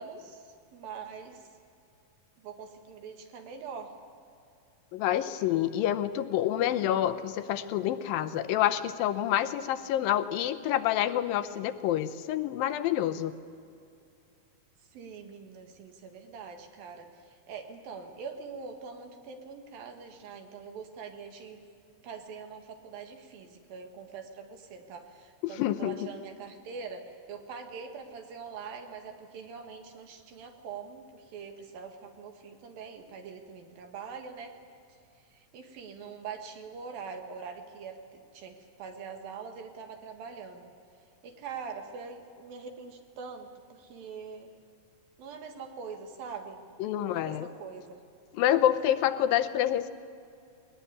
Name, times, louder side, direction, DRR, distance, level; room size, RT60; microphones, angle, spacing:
voice 1, 0.0-1.4 2.4-3.9 14.9-21.6 22.0-34.6 35.3-40.7 41.2-44.5 45.2-46.6 47.0-48.0, right 5 dB, 80° right, 5 dB, 3.6 m, -43 dB
voice 2, 4.9-13.3 25.4-26.0 46.8-47.5 48.3-49.9, left 12 dB, 85° left, 10 dB, 2.6 m, -27 dB
20.5 x 20.0 x 9.8 m, 2.5 s
omnidirectional pair, 4.1 m